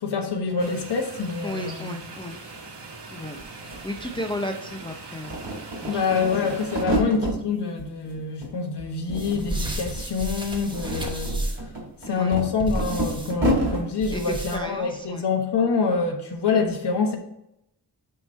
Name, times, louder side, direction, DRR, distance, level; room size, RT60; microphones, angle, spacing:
voice 1, 0.0-2.0 5.9-11.4 12.1-17.2, left 5 dB, 90° left, 1.3 m, -26 dB
sound 1, 0.6-6.8, right 3 dB, 85° right, 1.3 m, -41 dB
voice 2, 1.4-2.4 3.1-5.4 5.8-6.5 6.8-7.0 12.0-12.4 14.1-15.2, left 1 dB, 10° left, 0.5 m, -34 dB
sound 2, 3.4-3.5 3.7-4.8 5.2-7.4 7.8-8.5 8.8-9.7 9.9-10.1 10.6-13.8, right 1 dB, 30° right, 2.2 m, -28 dB
sound 3, 9.1-11.7 12.6-13.3 14.0-14.8, right 1 dB, 10° right, 0.9 m, -32 dB
9.0 x 3.0 x 5.4 m
wide cardioid pair, 175°, 40 cm